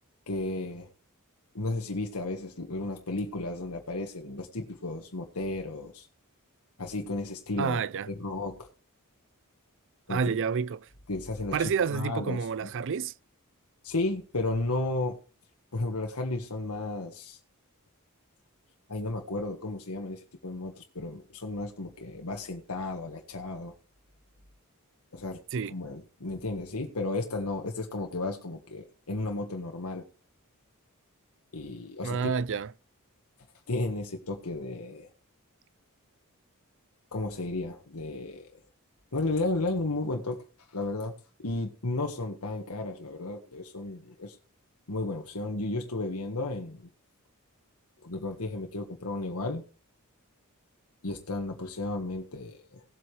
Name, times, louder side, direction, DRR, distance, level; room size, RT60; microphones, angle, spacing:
voice 1, 0.3-0.9 1.5-6.1 6.8-8.7 10.1-10.2 11.1-12.7 13.8-15.2 15.7-17.4 18.9-23.7 25.1-25.4 25.7-30.0 31.5-32.3 33.7-35.1 37.1-38.5 39.1-40.4 40.7-41.1 41.4-44.4 44.9-46.9 48.0-49.6 51.0-52.8, left 2 dB, 85° left, 1.6 m, -33 dB
voice 2, 7.6-8.1 10.1-10.9 11.5-13.1 25.5-25.8 32.0-32.7, right 6 dB, 60° right, 0.4 m, -29 dB
18.5 x 7.9 x 3.3 m
head